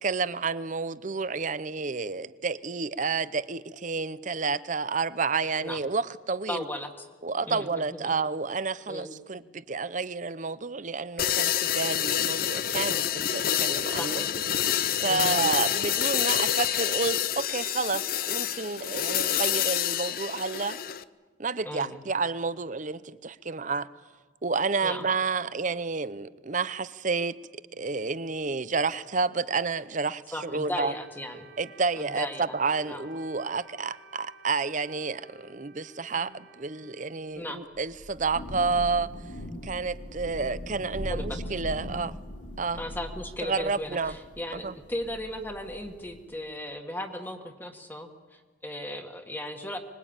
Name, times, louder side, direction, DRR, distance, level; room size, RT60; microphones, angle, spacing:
voice 1, 0.0-6.6 7.2-14.2 15.0-20.8 21.4-23.9 24.4-27.4 27.7-30.9 31.6-39.1 39.6-42.2 42.6-42.8 43.4-44.2 44.5-44.7, right 4 dB, 40° right, 0.7 m, -30 dB
voice 2, 6.5-7.0 7.5-8.1 8.9-9.1 13.8-14.3 15.1-15.4 21.6-22.0 24.8-25.0 30.3-31.5 32.0-32.5 32.9-33.1 37.4-37.6 41.1-41.4 42.8-49.8, left 1 dB, 10° left, 1.7 m, -36 dB
sound 1, 11.2-21.0, left 10 dB, 50° left, 0.7 m, -27 dB
Wind instrument woodwind instrument, 30.3-37.8, right 3 dB, 75° right, 4.6 m, -53 dB
Thunder / Rain, 37.8-46.4, equal, 70° left, 4.1 m, -40 dB
25.5 x 21.0 x 8.9 m
head